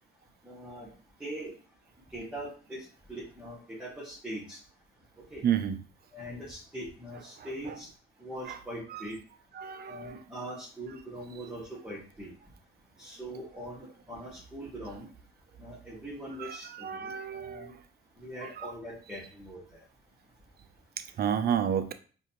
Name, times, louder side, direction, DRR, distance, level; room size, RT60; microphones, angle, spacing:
voice 1, 0.4-0.9 1.2-1.5 2.1-4.6 5.3-5.4 6.1-7.8 8.2-9.2 9.9-12.3 13.0-15.1 15.6-17.7 18.2-19.8, right 1 dB, 5° right, 1.7 m, -42 dB
voice 2, 5.4-5.8 7.4-7.8 8.5-8.6 8.9-9.0 9.5-10.2 16.4-17.8 18.4-18.7 21.0-21.9, right 8 dB, 50° right, 0.5 m, -32 dB
4.9 x 2.7 x 2.9 m
cardioid pair, 90°, 20 cm